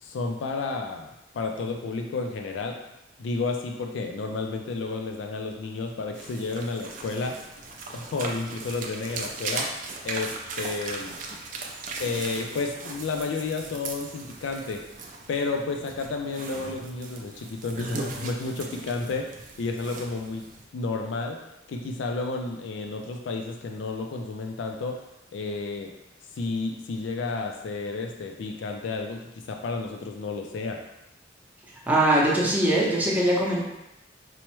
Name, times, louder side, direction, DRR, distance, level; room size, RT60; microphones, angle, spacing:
voice 1, 0.0-1.1 1.3-2.8 3.2-7.4 7.9-9.7 10.0-11.2 12.0-14.8 15.3-19.3 19.6-20.4 20.7-21.4 21.7-25.0 25.3-25.9 26.4-30.8, left 3 dB, 75° left, 3 dB, 0.4 m, -31 dB
sound 1, 6.1-20.6, right 3 dB, 45° right, 0.4 m, -38 dB
voice 2, 31.9-33.6, right 1 dB, 10° right, -5 dB, 0.7 m, -21 dB
4.5 x 2.0 x 3.0 m, 0.90 s
head